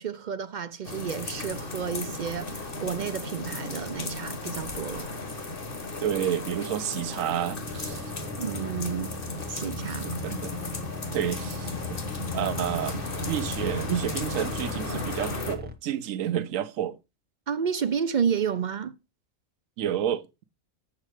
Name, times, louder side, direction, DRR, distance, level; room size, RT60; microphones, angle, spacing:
voice 1, 0.0-5.1 8.4-9.1 9.5-10.1 17.5-18.9, right 7 dB, 60° right, 0.5 m, -31 dB
sound 1, 0.8-15.6, left 2 dB, 45° left, 1.5 m, -35 dB
voice 2, 6.0-8.1 9.9-10.6 11.1-12.0 12.3-17.0 19.8-20.4, right 10 dB, 80° right, 1.1 m, -30 dB
sound 2, 7.6-15.7, left 2 dB, 10° right, 0.8 m, -39 dB
7.4 x 7.3 x 4.8 m
omnidirectional pair, 1.3 m